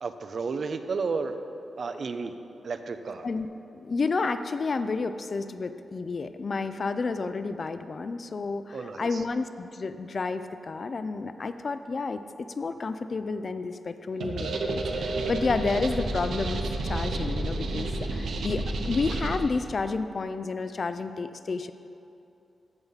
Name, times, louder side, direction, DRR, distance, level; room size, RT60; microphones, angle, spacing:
voice 1, 0.0-1.3 1.8-2.3 2.6-3.3 8.7-9.2, right 4 dB, 50° right, 8 dB, 0.5 m, -32 dB
voice 2, 3.7-21.7, left 4 dB, 40° left, 10 dB, 0.4 m, -31 dB
sound 1, 14.2-19.4, right 2 dB, 80° right, 0.9 m, -30 dB
15.0 x 6.9 x 4.0 m, 2.8 s
wide cardioid pair, 135°, 0 cm